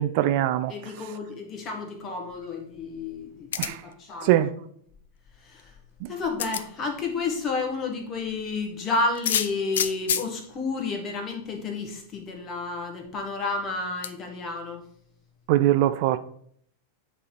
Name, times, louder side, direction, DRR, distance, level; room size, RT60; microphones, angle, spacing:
voice 1, 0.0-0.7 3.6-3.8 4.2-4.5 15.5-16.2, right 13 dB, 45° right, 0.3 m, -22 dB
voice 2, 0.7-4.4 5.4-5.7 6.1-14.8, left 3 dB, 30° left, 1.5 m, -31 dB
sound 1, 3.5-3.9 5.6-5.7 6.4-6.7 9.1-10.3 11.3-11.4 11.8-11.9 14.0-14.1, left 9 dB, 60° left, 0.4 m, -27 dB
8.4 x 3.4 x 4.4 m
figure-of-eight pair, 90°, 0 cm